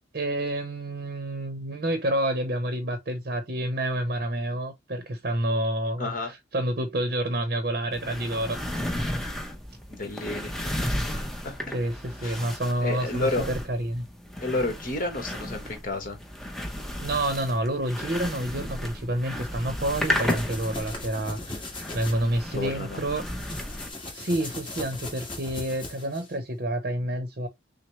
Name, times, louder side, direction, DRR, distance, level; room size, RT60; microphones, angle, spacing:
voice 1, 0.1-8.6 11.7-14.1 17.0-21.7 21.9-23.2 24.1-27.5, right 1 dB, 50° right, 0.8 m, -28 dB
voice 2, 6.0-6.3 9.9-10.6 11.4-11.7 12.2-12.4 12.8-13.5 14.4-16.2 22.5-23.0 23.3-23.4, left 2 dB, 45° left, 1.3 m, -30 dB
sound 1, 7.9-23.9, left 1 dB, ahead, 0.7 m, -34 dB
sound 2, 19.7-22.2 23.2-26.3, left 2 dB, 25° left, 1.6 m, -39 dB
6.2 x 2.1 x 3.1 m
head